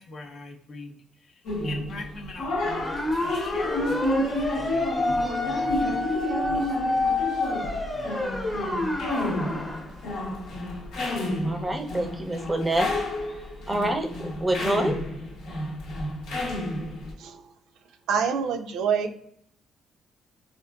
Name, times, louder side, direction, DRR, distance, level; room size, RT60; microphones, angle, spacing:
voice 1, 0.0-6.0 6.5-7.0 7.9-8.1, left 2 dB, 55° left, 4 dB, 0.5 m, -43 dB
sound 1, 1.5-17.1, left 1 dB, 80° left, 0.8 m, -30 dB
sound 2, 2.7-9.9, left 2 dB, 15° left, 0.7 m, -28 dB
voice 2, 11.4-12.9 13.2-15.0, right 1 dB, 20° right, 5 dB, 0.5 m, -27 dB
voice 3, 18.1-19.2, right 6 dB, 85° right, 5 dB, 0.3 m, -26 dB
3.6 x 2.5 x 2.3 m, 0.70 s
cardioid pair, 90°, 0 cm